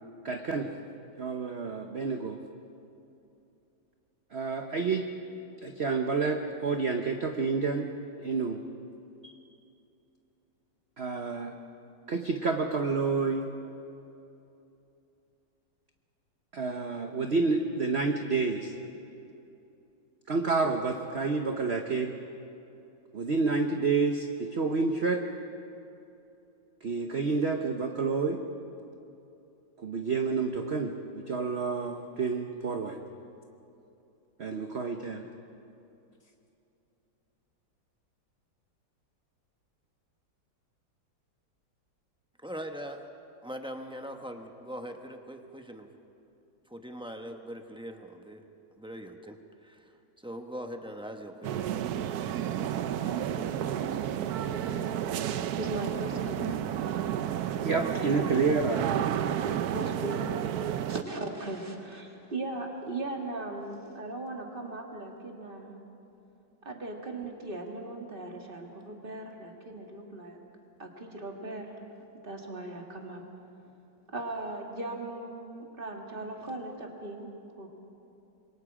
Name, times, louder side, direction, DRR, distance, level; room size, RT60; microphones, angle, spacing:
voice 1, 0.2-0.7 1.2-2.4 4.3-5.1 5.6-7.9 8.2-8.6 9.2-9.3 11.0-11.5 12.1-13.5 16.5-18.7 20.3-22.1 23.1-25.2 26.8-28.4 29.8-33.0 34.4-35.3 57.6-59.1, right 4 dB, 45° right, 4 dB, 1.0 m, -29 dB
voice 2, 42.4-43.1 43.4-45.9 46.7-48.4 48.8-49.4 49.6-49.9 50.2-51.6, equal, 5° right, 4 dB, 0.7 m, -41 dB
sound 1, 51.4-61.0, right 10 dB, 65° right, 1.1 m, -31 dB
voice 3, 52.7-55.1 55.5-56.6 59.7-60.5 60.9-65.8 66.6-70.4 70.8-71.7 72.2-73.2 74.1-77.3 77.6-77.7, right 2 dB, 30° right, 1 dB, 2.3 m, -39 dB
26.5 x 23.0 x 4.9 m, 2.8 s
omnidirectional pair, 2.0 m